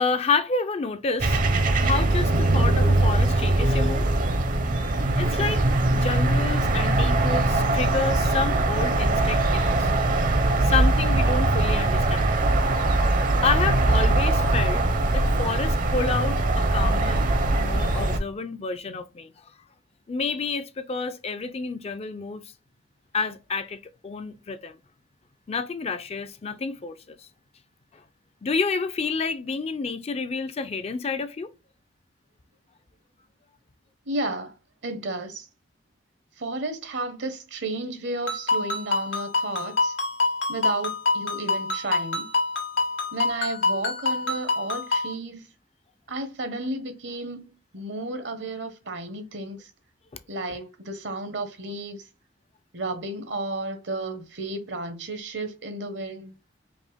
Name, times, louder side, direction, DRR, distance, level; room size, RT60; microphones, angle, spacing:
voice 1, 0.0-1.4 1.8-4.0 5.2-5.6 5.9-9.9 10.6-12.3 13.4-14.9 15.1-17.2 17.6-19.3 20.1-22.4 23.1-24.8 25.5-27.2 28.4-31.5 50.5-50.6, left 4 dB, 35° left, 0.4 m, -29 dB
sound 1, 1.2-18.2, right 2 dB, 45° right, 0.7 m, -22 dB
voice 2, 34.1-34.5 34.8-35.5 36.4-39.9 40.5-42.3 43.1-45.5 46.1-49.7 50.3-52.0 52.7-56.3, right 2 dB, 70° right, 1.0 m, -32 dB
Ringtone, 38.3-45.1, left 3 dB, 90° left, 1.6 m, -26 dB
5.1 x 2.1 x 3.4 m
head